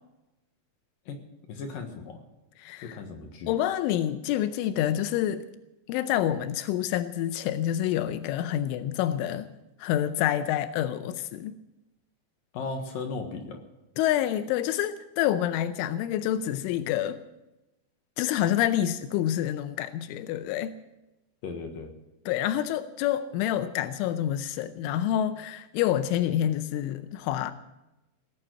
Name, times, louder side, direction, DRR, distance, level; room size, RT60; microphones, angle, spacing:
voice 1, 1.5-2.2 2.8-3.5 12.5-13.6 21.4-21.9, left 4 dB, 60° left, 4 dB, 2.6 m, -36 dB
voice 2, 2.6-3.0 3.5-5.5 5.9-9.5 9.8-11.6 14.0-17.2 18.2-20.8 22.3-27.5, left 11 dB, 90° left, 11 dB, 3.2 m, -27 dB
18.0 x 8.8 x 7.8 m, 0.94 s
omnidirectional pair, 5.5 m